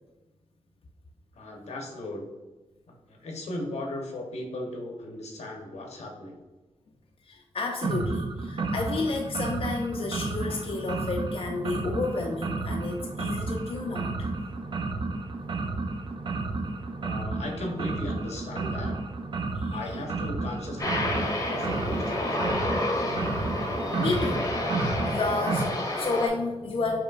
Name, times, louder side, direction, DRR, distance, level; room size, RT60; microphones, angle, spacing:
voice 1, 1.3-2.2 2.9-6.4 17.0-19.0 19.7-22.6, left 1 dB, 85° left, 1 dB, 0.8 m, -37 dB
voice 2, 7.3-14.3 19.5-19.8 22.5-22.6 23.0-24.5 24.8-27.0, left 3 dB, 55° left, 0 dB, 0.5 m, -31 dB
sound 1, 7.8-25.7, right 3 dB, 50° right, 0.4 m, -32 dB
Aircraft, 20.8-26.3, left 1 dB, 30° left, 0.8 m, -29 dB
5.0 x 2.9 x 2.4 m, 1.2 s
cardioid pair, 70°, 11 cm